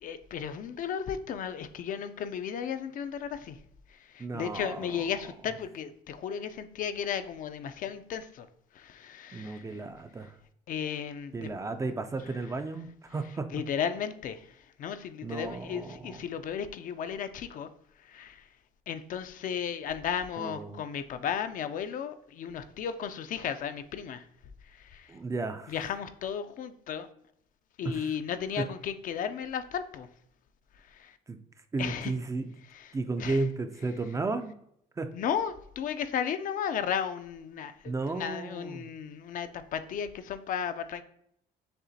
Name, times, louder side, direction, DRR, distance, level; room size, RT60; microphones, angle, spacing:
voice 1, 0.0-3.6 4.1-8.5 8.8-9.7 10.7-11.3 13.5-14.5 14.8-17.7 18.1-18.4 18.9-24.2 24.8-25.1 25.7-27.1 27.8-30.1 30.9-31.1 31.8-32.1 33.2-33.4 35.1-37.7 38.1-41.0, left 8 dB, 55° left, 10 dB, 0.4 m, -34 dB
voice 2, 4.2-5.1 9.3-10.4 11.3-13.5 15.2-16.2 20.4-20.8 25.1-25.8 27.8-28.2 28.6-28.7 31.3-31.4 31.7-32.5 32.9-34.5 35.0-35.1 37.8-38.9, right 3 dB, 20° right, 8 dB, 0.3 m, -34 dB
6.6 x 2.5 x 2.7 m, 0.70 s
cardioid pair, 110°, 17 cm